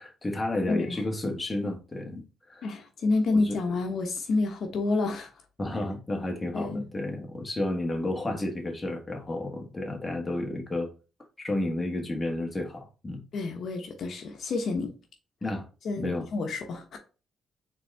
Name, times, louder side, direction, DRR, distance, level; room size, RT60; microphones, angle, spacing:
voice 1, 0.0-2.7 3.3-3.6 5.6-10.9 11.4-13.2 15.4-15.7 16.0-16.3, left 1 dB, 20° left, 1.3 m, -31 dB
voice 2, 0.7-1.0 2.6-5.3 5.7-5.8 6.5-6.8 13.3-14.9 15.8-17.0, left 3 dB, 60° left, 1.0 m, -29 dB
4.1 x 3.5 x 3.4 m
cardioid pair, 90°, 0 cm